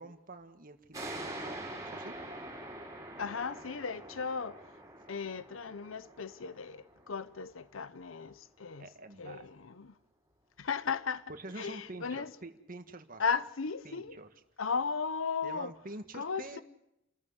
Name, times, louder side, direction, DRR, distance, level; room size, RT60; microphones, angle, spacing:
voice 1, 0.0-1.6 1.8-2.1 8.8-9.4 11.3-13.2 13.8-14.3 15.4-16.6, right 2 dB, 45° right, 1.7 m, -47 dB
sound 1, 0.9-8.1, right 1 dB, 15° right, 5.8 m, -45 dB
voice 2, 3.2-4.7 5.1-8.9 9.2-10.0 10.6-12.3 13.2-14.2 14.6-15.7 16.1-16.6, left 5 dB, 80° left, 0.8 m, -36 dB
28.5 x 14.0 x 8.1 m
head